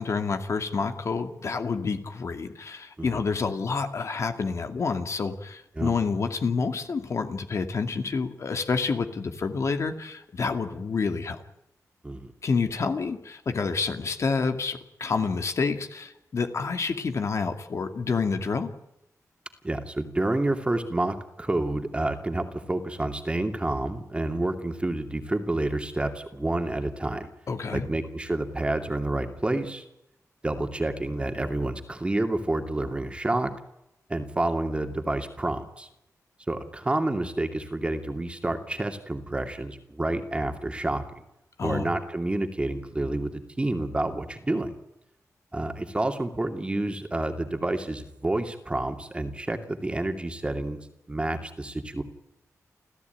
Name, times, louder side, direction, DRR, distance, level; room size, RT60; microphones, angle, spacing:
voice 1, 0.0-11.4 12.4-18.7 27.5-27.9 41.6-41.9, left 4 dB, 55° left, 7 dB, 2.3 m, -28 dB
voice 2, 3.0-3.3 5.8-6.0 12.0-12.3 19.6-27.3 27.7-29.8 30.4-33.5 34.1-35.9 36.5-41.2 41.6-44.7 45.5-50.8 51.1-52.0, right 2 dB, 20° right, 6 dB, 2.7 m, -29 dB
29.5 x 14.5 x 9.4 m, 0.84 s
wide cardioid pair, 130°, 6 cm